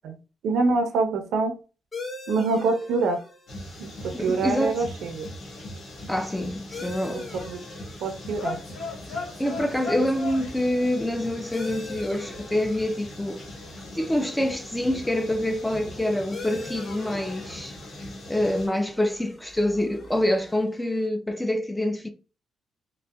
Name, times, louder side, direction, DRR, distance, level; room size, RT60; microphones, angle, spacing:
voice 1, 0.4-1.5 2.3-3.2 3.8-5.3 7.1-7.6 8.0-8.6, right 3 dB, 85° right, 0.6 m, -25 dB
sound 1, 1.9-21.1, left 3 dB, 25° left, 1.0 m, -45 dB
sound 2, 3.5-18.7, left 1 dB, 80° left, 1.4 m, -41 dB
voice 2, 4.1-4.8 6.1-7.3 9.4-13.4 13.9-17.8 18.3-22.1, left 1 dB, 10° left, 0.4 m, -26 dB
sound 3, 8.0-20.6, left 4 dB, 60° left, 1.3 m, -42 dB
3.9 x 2.1 x 2.2 m
cardioid pair, 115°, 0 cm